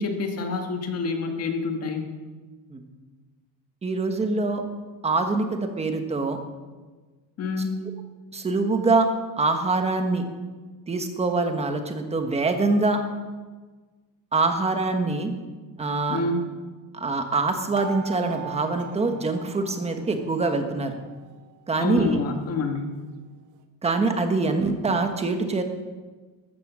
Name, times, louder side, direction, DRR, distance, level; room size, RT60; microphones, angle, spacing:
voice 1, 0.0-2.0 7.4-7.8 16.1-16.5 21.8-23.0, left 3 dB, 35° left, 4 dB, 1.7 m, -27 dB
voice 2, 3.8-4.6 5.0-6.4 8.3-9.1 9.4-10.2 10.9-13.0 14.3-15.3 15.8-16.2 16.9-21.0 21.7-22.1 23.8-25.6, right 3 dB, 15° right, 6 dB, 1.2 m, -24 dB
sound 1, 17.8-20.3 20.6-21.6 22.1-22.2 22.4-22.6, right 9 dB, 40° right, 1.3 m, -41 dB
14.0 x 14.0 x 6.1 m, 1.3 s
cardioid pair, 175°, 45 cm